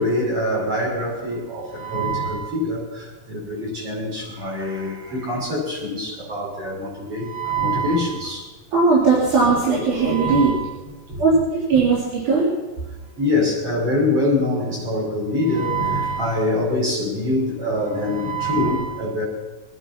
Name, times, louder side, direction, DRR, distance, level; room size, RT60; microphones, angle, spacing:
voice 1, 0.0-8.5 10.0-10.6 11.1-11.4 13.2-19.2, left 1 dB, 45° right, -4 dB, 6.8 m, -24 dB
voice 2, 8.7-10.5 11.2-12.5, right 4 dB, 80° right, -6 dB, 4.9 m, -18 dB
23.5 x 10.0 x 6.0 m, 1.2 s
omnidirectional pair, 3.5 m